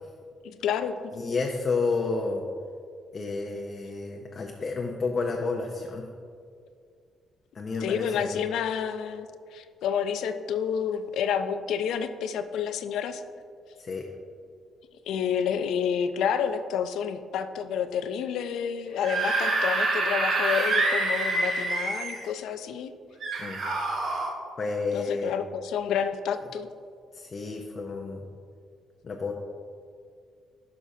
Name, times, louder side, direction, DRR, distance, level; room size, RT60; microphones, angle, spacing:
voice 1, 0.4-0.9 7.8-9.3 9.5-13.2 15.1-22.9 24.9-26.7, left 7 dB, 80° left, 10 dB, 0.4 m, -29 dB
voice 2, 1.1-2.4 3.1-6.1 7.5-8.4 13.8-14.0 23.4-23.6 24.6-25.3 27.1-28.2 29.0-29.3, left 4 dB, 45° left, 1 dB, 0.6 m, -30 dB
Screaming / Screech, 18.9-22.3 23.2-24.3, right 2 dB, 60° right, 1.3 m, -26 dB
11.0 x 5.6 x 2.7 m, 2.3 s
cardioid pair, 90°, 0 cm